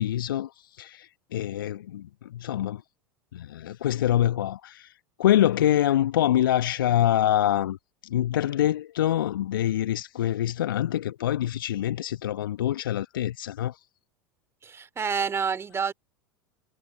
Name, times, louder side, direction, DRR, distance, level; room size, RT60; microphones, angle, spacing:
voice 1, 0.0-2.8 3.3-4.9 5.2-7.8 8.0-13.8, left 12 dB, 70° left, 0.9 m, -25 dB
voice 2, 14.6-15.9, right 6 dB, 20° right, 2.6 m, -28 dB
figure-of-eight pair, 80°, 12 cm